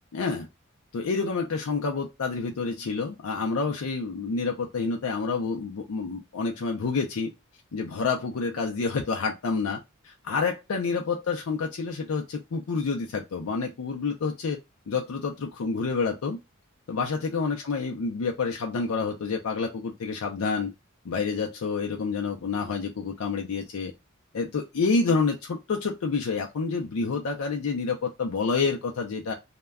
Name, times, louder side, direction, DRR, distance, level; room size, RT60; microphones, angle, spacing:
voice 1, 0.1-0.5 0.9-7.3 7.7-14.6 14.9-16.4 16.9-20.7 21.0-23.9 24.3-29.3, left 4 dB, 80° left, 0.5 m, -28 dB
2.2 x 2.1 x 3.4 m
head